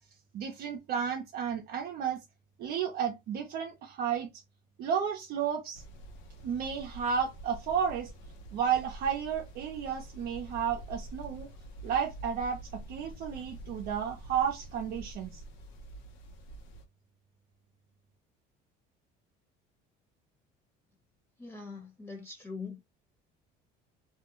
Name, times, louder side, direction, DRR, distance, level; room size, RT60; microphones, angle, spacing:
voice 1, 0.3-2.2 2.6-4.3 4.8-5.8 6.4-8.1 8.5-11.5 11.8-15.4, right 7 dB, 55° right, 0.6 m, -32 dB
sound 1, 5.7-16.8, right 1 dB, 80° left, 0.8 m, -47 dB
voice 2, 21.4-22.8, left 4 dB, 10° left, 1.0 m, -42 dB
2.3 x 2.1 x 2.9 m
cardioid pair, 140°, 19 cm